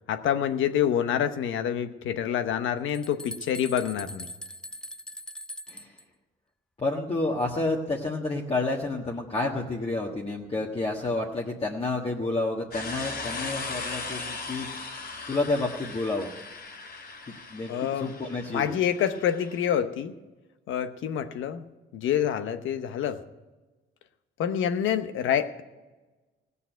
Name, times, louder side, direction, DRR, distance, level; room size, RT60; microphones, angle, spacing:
voice 1, 0.1-4.3 17.7-18.1 18.5-20.1 20.7-21.7 21.9-23.2 24.4-25.6, left 9 dB, 80° left, 10 dB, 1.0 m, -27 dB
sound 1, 2.5-2.6 2.9-6.0, left 1 dB, 5° left, 0.5 m, -41 dB
voice 2, 6.8-14.7 15.3-16.3 17.3-18.8, left 2 dB, 30° left, -1 dB, 1.5 m, -30 dB
sound 2, 12.7-19.7, left 3 dB, 55° left, 3.9 m, -38 dB
16.5 x 6.9 x 9.2 m, 1.2 s
cardioid pair, 90°, 20 cm